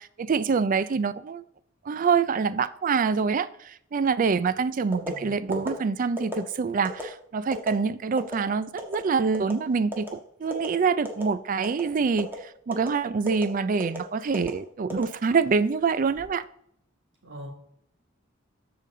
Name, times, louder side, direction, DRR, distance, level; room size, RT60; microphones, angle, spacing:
voice 1, 0.0-1.4 1.9-16.4, right 5 dB, 45° right, 0.4 m, -26 dB
sound 1, 4.9-5.1 5.5-5.7 6.2-6.4 6.8-7.0 7.5-7.7 8.2-8.4 8.8-9.0 9.3-9.6 9.9-10.1 10.5-10.7 11.0-11.3 11.6-11.8 12.2-12.4 12.7-12.9 13.3-13.4 13.8-14.0 14.3-14.5 14.9-15.5 16.0-16.3, equal, 10° right, 1.5 m, -34 dB
voice 2, 5.0-5.7 17.2-17.5, equal, 70° right, 3.0 m, -43 dB
14.0 x 5.1 x 3.8 m
head